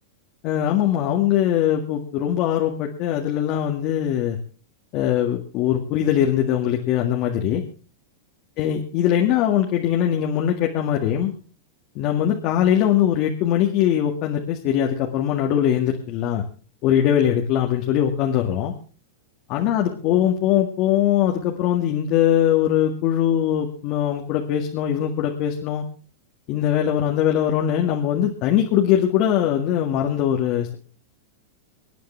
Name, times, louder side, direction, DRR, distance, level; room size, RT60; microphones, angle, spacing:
voice 1, 0.4-4.4 4.9-7.6 8.6-11.3 12.0-16.4 16.8-18.7 19.5-25.8 26.5-30.8, left 10 dB, 45° left, 1 dB, 2.0 m, -21 dB
25.5 x 9.3 x 3.4 m, 0.39 s
hypercardioid pair, 120°, 0 cm